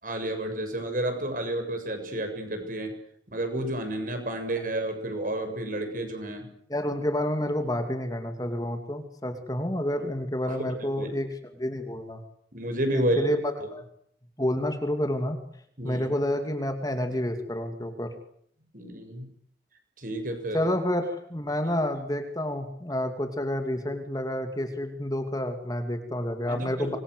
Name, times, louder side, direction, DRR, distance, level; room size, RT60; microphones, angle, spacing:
voice 1, 0.0-2.9 3.3-6.5 10.5-10.6 11.0-11.1 12.5-13.2 15.8-16.1 18.7-19.3 20.0-20.6 26.5-27.0, right 1 dB, 45° right, 6 dB, 7.0 m, -31 dB
voice 2, 6.7-11.3 11.6-12.2 12.9-13.8 14.4-15.4 15.8-18.1 20.5-27.0, left 1 dB, 20° left, 6 dB, 2.7 m, -29 dB
26.0 x 22.5 x 8.2 m, 0.67 s
head